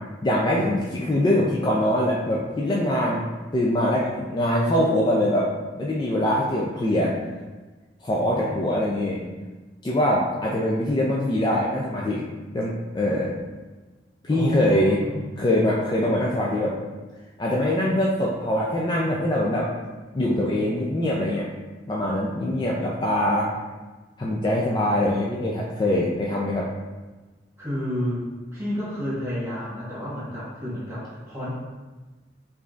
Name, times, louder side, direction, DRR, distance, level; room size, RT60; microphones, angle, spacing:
voice 1, 0.2-3.2 3.5-5.5 5.8-7.1 8.0-9.2 9.8-12.2 12.5-13.3 14.2-15.0 15.4-16.7 17.4-19.7 20.1-21.5 21.9-23.5 24.2-26.7, left 1 dB, 25° left, -4 dB, 0.3 m, -23 dB
voice 2, 14.3-15.3 27.6-31.5, equal, 15° right, -10 dB, 1.3 m, -31 dB
4.9 x 2.6 x 2.4 m, 1.2 s
head